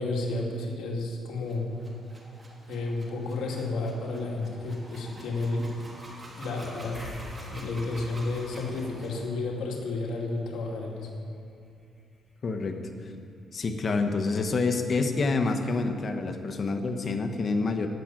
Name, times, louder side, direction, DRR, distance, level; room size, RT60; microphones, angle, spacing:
voice 1, 0.0-1.7 2.7-5.7 6.4-7.2 7.5-11.1, left 2 dB, 80° left, -1 dB, 2.5 m, -31 dB
sound 1, 1.4-9.3, right 1 dB, 25° right, 3.1 m, -48 dB
sound 2, 6.9-13.7, equal, 15° left, 4.2 m, -49 dB
voice 2, 12.4-12.8 13.5-17.9, left 3 dB, 45° left, 6 dB, 1.3 m, -27 dB
16.0 x 6.0 x 9.1 m, 2.4 s
cardioid pair, 90°, 0 cm